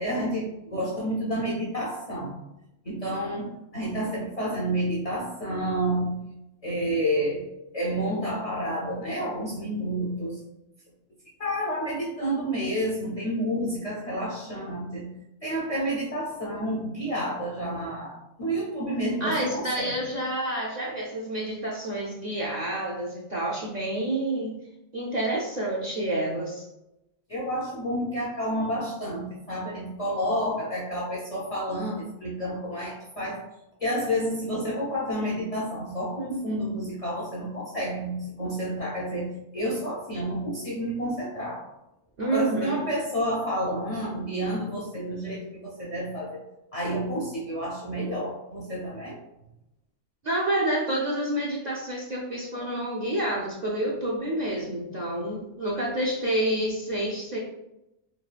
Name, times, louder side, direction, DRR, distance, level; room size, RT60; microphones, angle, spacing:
voice 1, 0.0-2.4 2.8-6.2 6.6-7.4 7.7-10.4 11.4-15.1 15.4-19.9 27.3-33.4 33.8-41.6 42.2-46.4 46.7-49.2, equal, 45° left, -5 dB, 0.5 m, -30 dB
voice 2, 19.2-24.5 24.9-26.6 42.2-42.8 50.2-57.4, right 1 dB, 55° right, -5 dB, 0.5 m, -28 dB
3.4 x 2.3 x 2.4 m, 0.90 s
omnidirectional pair, 1.2 m